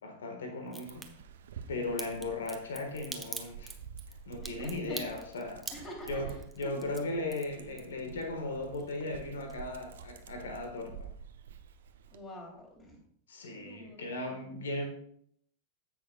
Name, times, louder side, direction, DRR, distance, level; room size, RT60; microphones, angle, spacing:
voice 1, 0.0-1.1 1.7-3.7 4.3-5.7 6.1-11.1 13.3-14.9, left 2 dB, 65° left, 4 dB, 1.5 m, -37 dB
Crack, 0.7-1.1 2.0-8.2 8.5-9.2 9.5-9.6, right 3 dB, 10° right, 1.1 m, -43 dB
Dog, 0.8-12.2, right 7 dB, 60° right, 0.7 m, -49 dB
voice 2, 4.4-5.0 5.7-6.7 12.1-13.0 13.5-14.5, left 1 dB, 20° left, 0 dB, 3.2 m, -47 dB
15.5 x 6.1 x 2.3 m, 0.66 s
figure-of-eight pair, 90°, 0 cm